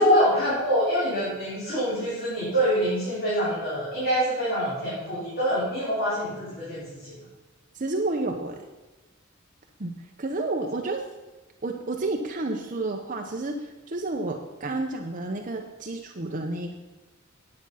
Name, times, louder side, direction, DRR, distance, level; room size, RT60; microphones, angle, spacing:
voice 1, 0.0-7.1, equal, 50° left, -9 dB, 4.4 m, -25 dB
voice 2, 7.7-8.7 9.8-11.0 11.6-16.7, right 2 dB, 40° right, 2 dB, 0.8 m, -30 dB
9.9 x 8.7 x 5.7 m, 1.2 s
head